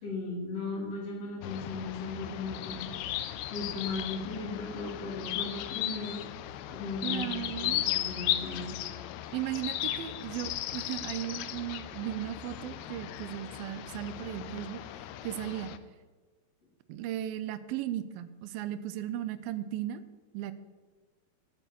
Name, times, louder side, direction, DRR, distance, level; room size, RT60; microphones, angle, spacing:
voice 1, 0.0-2.9 3.5-6.2 6.7-8.7, left 3 dB, 40° left, -3 dB, 4.1 m, -37 dB
sound 1, 1.4-15.8, left 12 dB, 85° left, 1.6 m, -36 dB
voice 2, 7.0-7.9 9.3-14.8 15.2-15.7 16.9-20.0 20.3-20.5, right 12 dB, 90° right, 13 dB, 2.5 m, -36 dB
11.5 x 8.1 x 8.5 m, 1.3 s
omnidirectional pair, 4.1 m